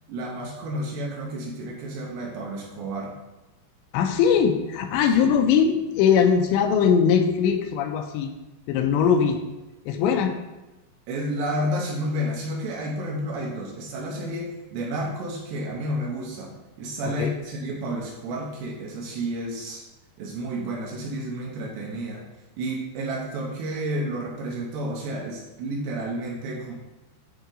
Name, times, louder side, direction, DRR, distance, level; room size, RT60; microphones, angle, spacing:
voice 1, 0.1-3.1 5.1-5.5 11.1-19.8 20.2-22.2 22.6-26.7, right 1 dB, 75° right, -2 dB, 2.8 m, -31 dB
voice 2, 3.9-8.3 8.7-9.4 9.9-10.4 17.0-17.3, left 7 dB, 85° left, 5 dB, 2.8 m, -21 dB
10.0 x 3.8 x 3.8 m, 1.0 s
omnidirectional pair, 5.3 m